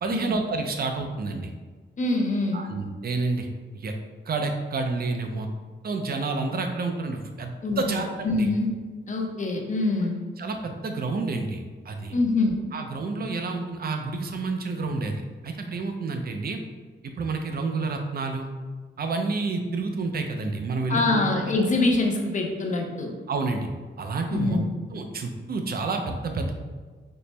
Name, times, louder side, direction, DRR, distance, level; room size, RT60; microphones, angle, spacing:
voice 1, 0.0-1.5 2.5-3.5 3.7-3.9 4.3-5.5 5.8-8.5 10.4-12.2 12.7-16.6 17.0-18.5 19.0-21.2 23.3-23.7 24.0-24.6 24.9-26.5, right 3 dB, 50° right, 5 dB, 0.4 m, -29 dB
voice 2, 2.0-2.6 7.6-8.7 9.1-10.2 12.1-12.6 20.9-23.1 24.3-24.7, left 2 dB, 40° left, 2 dB, 0.5 m, -25 dB
4.2 x 2.0 x 3.2 m, 1.4 s
wide cardioid pair, 125°, 20 cm